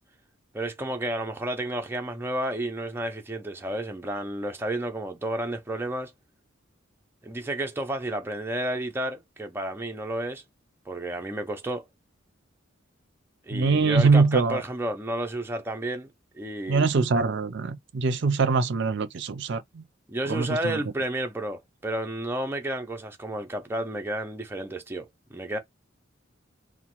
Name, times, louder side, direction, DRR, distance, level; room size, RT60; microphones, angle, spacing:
voice 1, 0.5-6.1 7.2-10.4 10.9-11.9 13.5-16.1 16.3-16.9 20.1-25.6, right 1 dB, 10° right, 0.4 m, -31 dB
voice 2, 13.5-14.6 16.7-19.8 20.3-20.8, right 4 dB, 60° right, 0.5 m, -23 dB
3.0 x 2.0 x 2.9 m
head